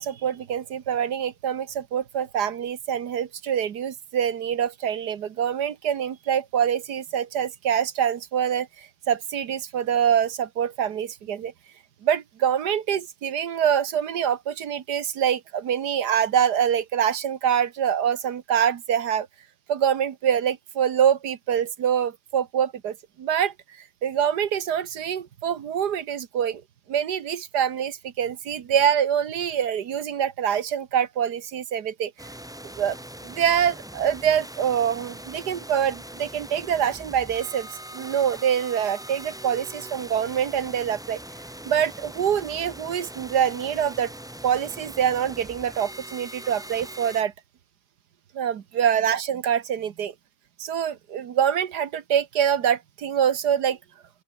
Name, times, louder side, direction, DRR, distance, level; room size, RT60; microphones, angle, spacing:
voice 1, 0.0-11.5 12.0-19.3 19.7-26.6 26.9-32.1 32.8-33.0 33.2-37.7 37.9-41.2 41.7-44.1 44.4-47.3 48.3-50.1 50.6-53.8, right 9 dB, 80° right, 1.8 m, -25 dB
sound 1, 32.2-47.2, right 1 dB, 5° right, 0.5 m, -41 dB
open air
omnidirectional pair, 1.7 m